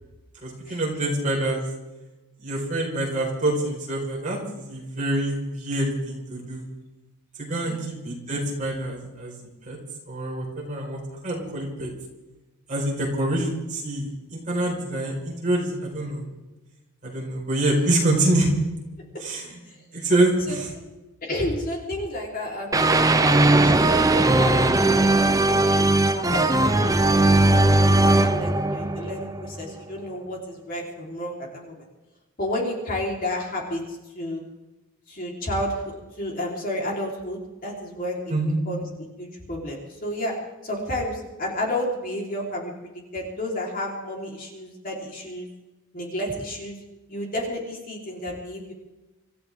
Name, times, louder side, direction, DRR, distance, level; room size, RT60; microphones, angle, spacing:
voice 1, 0.4-1.6 2.4-6.6 7.4-9.3 9.6-9.8 10.1-11.9 12.7-16.3 17.0-18.5 19.2-19.6 19.9-20.7 38.3-38.6, right 1 dB, 35° right, -2 dB, 4.8 m, -26 dB
voice 2, 21.2-25.1 25.5-31.9 32.4-34.4 35.1-35.8 36.2-38.3 38.7-38.8 39.2-40.3 40.6-45.5 45.9-46.8 47.1-48.7, left 1 dB, 40° left, -2 dB, 4.0 m, -31 dB
sound 1, 22.7-29.7, right 2 dB, 15° right, 0.6 m, -19 dB
26.0 x 14.5 x 3.7 m, 1.1 s
head